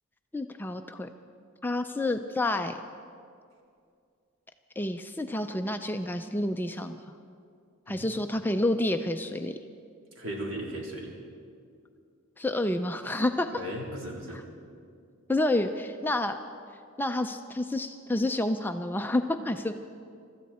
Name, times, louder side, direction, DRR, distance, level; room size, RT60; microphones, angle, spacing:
voice 1, 0.3-1.1 1.6-2.8 4.8-7.0 7.9-9.6 12.4-13.5 15.3-16.4 17.0-19.7, left 1 dB, 10° left, 7 dB, 0.4 m, -29 dB
voice 2, 10.2-11.1 13.5-14.4, right 1 dB, 65° right, -2 dB, 3.4 m, -36 dB
25.0 x 13.5 x 4.3 m, 2.4 s
head